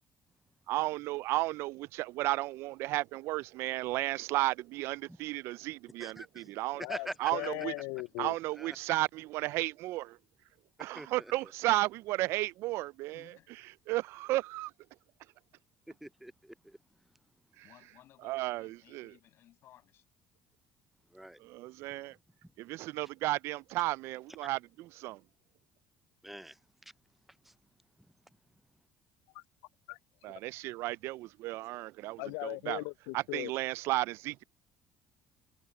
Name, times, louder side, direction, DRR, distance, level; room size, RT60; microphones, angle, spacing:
voice 1, 0.7-6.8 7.2-7.7 8.2-10.2 10.8-13.3 13.9-14.7 17.6-17.7 18.2-19.1 21.4-22.2 22.6-25.2 30.2-32.8 33.1-34.4, right 18 dB, 70° right, 0.3 m, -33 dB
voice 2, 6.0-6.5 6.9-7.3 8.6-8.8 11.0-11.3 15.9-16.8 21.1-21.4 26.2-26.6 27.5-27.6, right 1 dB, 5° right, 0.5 m, -44 dB
voice 3, 6.7-8.4 29.3-29.4 29.9-30.0 32.2-33.5, left 27 dB, 85° left, 0.4 m, -38 dB
voice 4, 13.1-13.5 17.6-20.1, left 13 dB, 65° left, 6.2 m, -60 dB
supercardioid pair, 75°, 5 cm